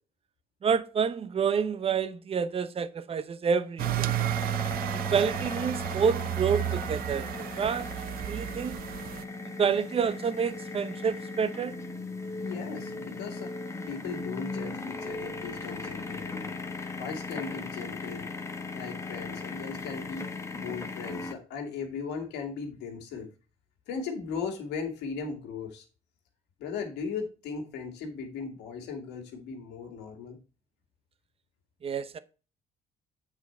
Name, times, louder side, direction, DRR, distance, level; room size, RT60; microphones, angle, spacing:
voice 1, 0.6-4.1 5.1-7.9 8.3-8.8 9.6-11.7 31.8-32.2, right 6 dB, 35° right, 0.8 m, -28 dB
sound 1, 3.8-21.3, left 3 dB, 15° left, 1.0 m, -38 dB
sound 2, 3.8-9.2, right 15 dB, 60° right, 0.4 m, -32 dB
voice 2, 12.4-13.5 13.9-16.6 16.9-18.3 18.7-20.3 20.5-23.3 23.9-25.8 26.6-30.4, left 5 dB, 85° left, 2.2 m, -37 dB
8.4 x 4.6 x 4.4 m
cardioid pair, 110°, 17 cm